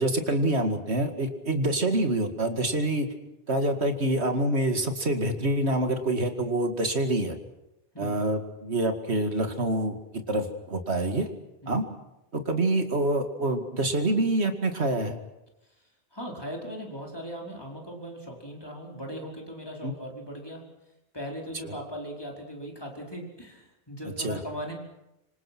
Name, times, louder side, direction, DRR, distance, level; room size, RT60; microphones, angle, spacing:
voice 1, 0.0-3.1 3.5-7.4 8.0-11.3 11.7-11.8 12.3-15.2 19.8-19.9 21.6-21.7 24.2-24.4, right 1 dB, 80° right, 6 dB, 2.5 m, -26 dB
voice 2, 15.8-20.7 21.1-24.7, equal, 20° left, 0 dB, 4.9 m, -39 dB
26.0 x 25.5 x 6.2 m, 0.90 s
omnidirectional pair, 1.1 m